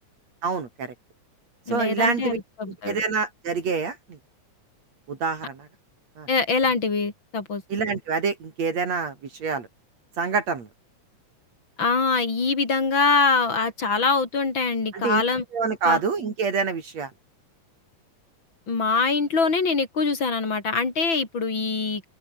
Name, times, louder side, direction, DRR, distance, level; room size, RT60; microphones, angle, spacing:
voice 1, 0.4-0.9 1.7-2.4 2.8-4.2 5.1-5.7 6.2-6.3 7.7-9.1 9.4-9.7 10.2-10.7 14.9-15.2 15.5-17.1, right 5 dB, 60° right, 4.4 m, -26 dB
voice 2, 1.7-3.0 6.3-7.6 11.8-15.4 15.9-16.0 18.7-22.1, left 4 dB, 40° left, 4.6 m, -24 dB
omnidirectional pair, 3.4 m